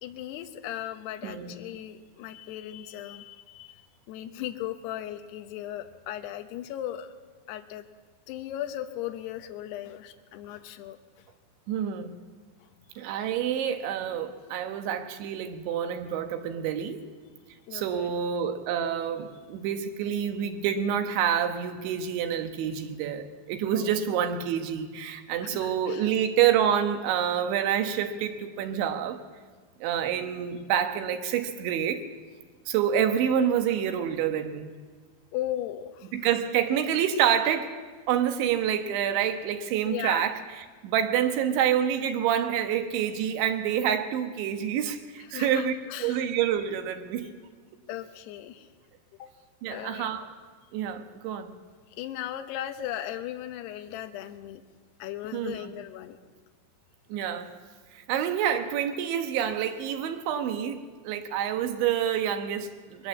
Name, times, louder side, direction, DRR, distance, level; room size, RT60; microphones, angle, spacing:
voice 1, 0.0-7.1 7.5-7.8 8.3-11.2 17.7-18.1 23.7-23.9 25.4-26.1 35.3-36.1 39.8-40.2 45.3-46.2 47.9-48.7 49.2-49.3 49.7-50.1 52.0-54.6 55.0-56.2, left 12 dB, 75° left, 7 dB, 2.9 m, -37 dB
voice 2, 1.2-1.6 11.7-12.2 13.0-17.0 17.7-29.2 29.8-32.0 32.7-34.7 36.1-37.8 38.1-45.7 46.0-47.3 49.6-50.3 50.7-51.5 55.3-55.7 57.1-57.5 57.9-63.1, right 9 dB, 80° right, 7 dB, 3.6 m, -27 dB
21.5 x 18.0 x 7.3 m, 1.5 s
omnidirectional pair, 5.2 m